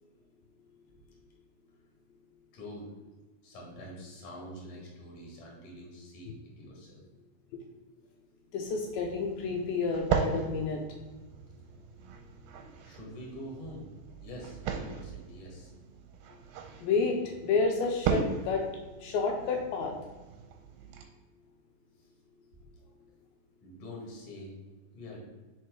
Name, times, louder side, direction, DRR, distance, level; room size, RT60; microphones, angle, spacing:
voice 1, 2.5-2.9 3.4-7.0 12.8-13.9 14.2-15.7 22.0-22.1 23.6-24.5 24.9-25.2, equal, 45° left, -3 dB, 2.2 m, -45 dB
voice 2, 8.5-10.8 16.8-18.6 19.0-19.9, left 4 dB, 80° left, 2 dB, 2.4 m, -30 dB
sound 1, 8.7-21.0, right 6 dB, 85° right, 2.5 m, -37 dB
5.1 x 4.5 x 4.6 m, 1.2 s
omnidirectional pair, 4.3 m